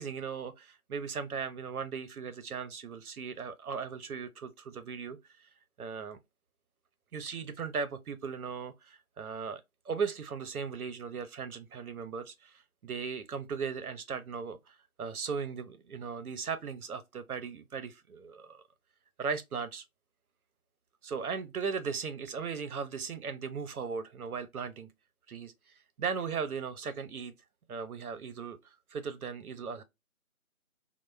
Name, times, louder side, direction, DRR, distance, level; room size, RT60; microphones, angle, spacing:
voice 1, 0.0-5.5 5.8-6.2 7.1-9.6 9.9-18.6 19.2-19.8 21.0-24.9 25.3-25.5 26.0-27.3 27.7-28.6 28.9-29.8, right 5 dB, 75° right, 0.5 m, -37 dB
2.1 x 2.0 x 3.0 m
figure-of-eight pair, 175°, 44 cm